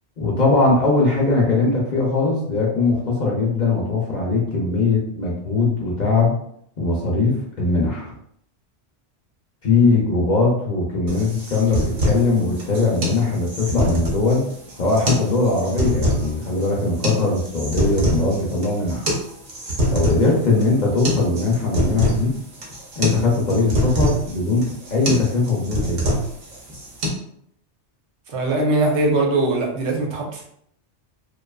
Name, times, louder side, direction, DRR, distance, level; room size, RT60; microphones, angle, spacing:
voice 1, 0.2-6.3 6.8-8.1 9.6-14.4 14.8-19.0 19.9-22.4 23.0-26.2, left 3 dB, 55° left, -3 dB, 0.6 m, -20 dB
sound 1, 11.1-27.1, equal, 50° right, 0.8 m, -25 dB
voice 2, 28.3-30.5, right 2 dB, 80° right, 0 dB, 0.9 m, -21 dB
2.5 x 2.3 x 2.2 m, 0.69 s
omnidirectional pair, 1.1 m